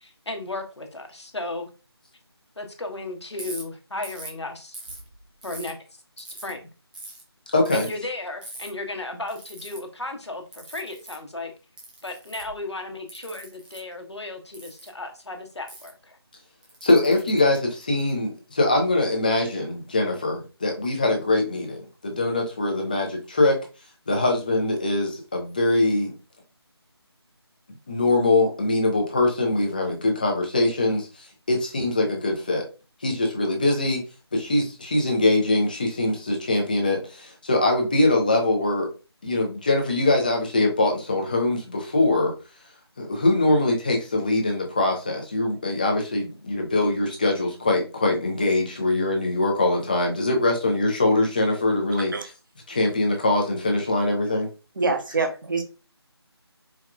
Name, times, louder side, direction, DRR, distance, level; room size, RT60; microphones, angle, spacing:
voice 1, 0.0-1.7 2.6-4.8 5.4-5.8 6.2-6.7 7.9-11.5 12.0-16.2, left 2 dB, 85° left, 1.0 m, -35 dB
Ratchet pawl, 3.4-3.6 4.0-4.3 4.7-5.7 6.2-6.5 6.9-7.2 7.6-7.9 8.4-8.7 9.3-9.8 10.5-11.2 11.8-12.5 13.1-13.8 14.5-14.9 15.7-15.9 16.6-18.1, right 2 dB, 20° right, 0.8 m, -40 dB
voice 2, 7.5-7.9 16.8-23.6 24.1-26.1 27.9-31.1 31.5-32.6 33.0-34.0 34.3-38.9 39.2-42.3 43.0-52.1 52.7-54.5, left 2 dB, 20° left, 0.5 m, -22 dB
voice 3, 54.8-55.6, right 3 dB, 50° right, 0.8 m, -25 dB
4.5 x 2.3 x 2.3 m
figure-of-eight pair, 165°, 14 cm